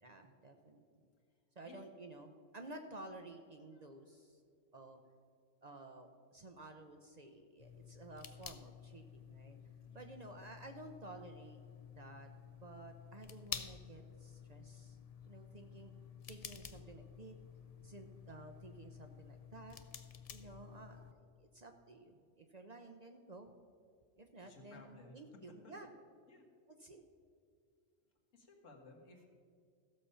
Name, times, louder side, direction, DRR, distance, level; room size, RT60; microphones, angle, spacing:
voice 1, 0.0-0.8 1.6-4.4 4.7-5.0 5.6-9.6 9.9-11.6 12.0-12.3 12.6-15.0 15.2-15.9 16.3-17.4 17.8-19.8 20.3-23.5 24.2-25.9 26.8-27.0, right 2 dB, 40° right, 5 dB, 0.7 m, -53 dB
sound 1, 7.6-21.1, left 7 dB, 60° left, 0.4 m, -51 dB
voice 2, 9.8-10.1 20.3-20.6 24.4-25.2 25.5-25.7 26.3-26.5 28.3-29.2, left 3 dB, 80° left, 1 dB, 1.9 m, -59 dB
14.5 x 6.9 x 5.5 m, 2.2 s
omnidirectional pair, 1.3 m